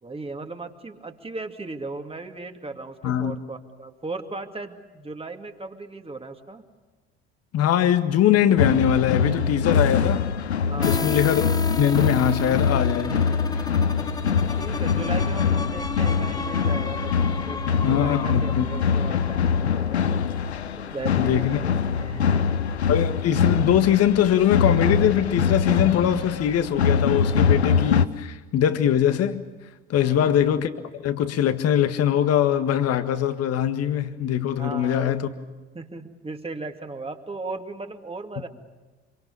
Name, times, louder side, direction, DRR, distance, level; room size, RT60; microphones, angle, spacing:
voice 1, 0.0-6.6 10.7-11.1 14.6-17.1 17.4-20.1 20.8-22.4 30.0-30.3 34.6-35.2 35.7-38.5, right 3 dB, 20° right, 2.5 m, -36 dB
voice 2, 7.5-10.3 10.8-11.4 11.8-13.3 17.8-18.6 21.2-21.6 22.9-29.4 29.9-35.3, left 10 dB, 50° left, 1.8 m, -22 dB
sound 1, 8.6-28.1, left 6 dB, 90° left, 0.8 m, -23 dB
sound 2, 10.8-20.4, left 3 dB, 10° left, 0.8 m, -34 dB
26.5 x 24.5 x 7.0 m
figure-of-eight pair, 60°, 32 cm